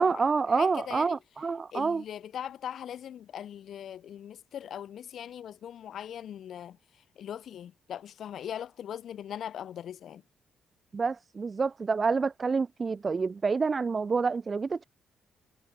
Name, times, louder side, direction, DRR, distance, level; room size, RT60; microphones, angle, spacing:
voice 1, 0.0-2.0 10.9-14.8, right 4 dB, 40° right, 0.3 m, -28 dB
voice 2, 0.6-1.2 1.7-6.8 7.2-10.2, left 9 dB, 60° left, 0.5 m, -40 dB
hypercardioid pair, 45°, 0 cm